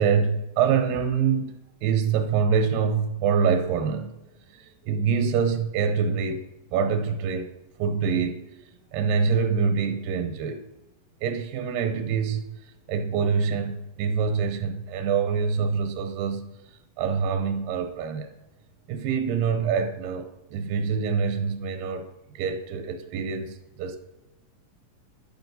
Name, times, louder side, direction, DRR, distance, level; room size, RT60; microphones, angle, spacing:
voice 1, 0.0-1.5 1.8-4.1 4.5-6.4 6.7-7.5 7.8-8.4 8.9-10.6 11.2-12.6 12.9-16.5 17.0-18.3 18.9-22.1 22.3-24.0, right 6 dB, 85° right, 8 dB, 2.4 m, -25 dB
12.0 x 5.9 x 2.6 m, 0.96 s
omnidirectional pair, 3.9 m